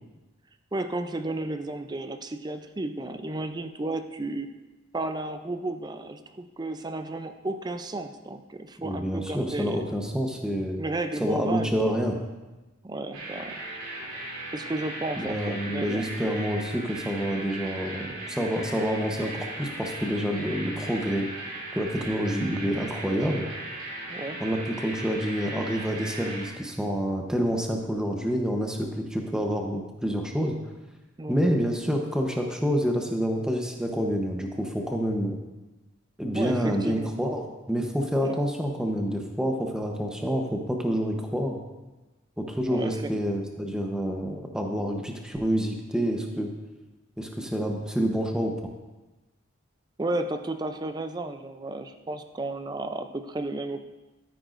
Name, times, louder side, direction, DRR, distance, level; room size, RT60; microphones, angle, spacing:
voice 1, 0.7-4.5 4.9-9.8 10.8-12.0 12.8-13.6 14.5-16.0 24.1-24.4 31.2-31.4 36.3-37.1 38.2-38.4 42.7-43.1 50.0-53.8, right 2 dB, 20° right, 8 dB, 0.5 m, -33 dB
voice 2, 8.8-10.8 11.2-12.2 15.2-21.3 21.7-23.5 24.4-30.6 31.3-35.4 36.2-41.6 42.4-46.5 47.2-48.5, equal, 5° right, 2 dB, 0.9 m, -28 dB
sound 1, 13.1-26.5, right 2 dB, 85° right, 2.9 m, -37 dB
13.0 x 9.3 x 2.6 m, 1.1 s
head